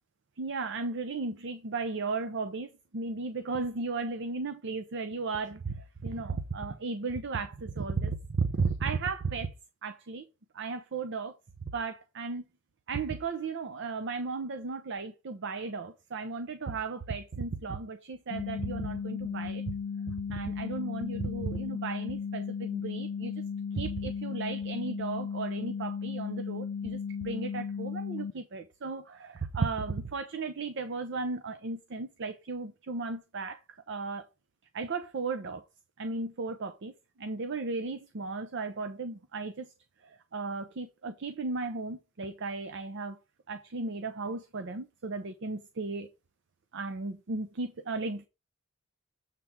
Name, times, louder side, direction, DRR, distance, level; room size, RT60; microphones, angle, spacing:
voice 1, 0.4-9.5 9.8-10.2 10.5-11.4 11.7-12.5 12.9-19.6 20.3-23.3 23.7-33.6 33.9-34.3 34.7-35.6 36.0-36.9 37.2-39.7 40.0-43.2 43.5-46.1 46.7-48.3, right 4 dB, 60° right, 0.6 m, -35 dB
sound 1, 18.3-28.3, left 6 dB, 90° left, 0.4 m, -35 dB
7.4 x 3.5 x 5.7 m
head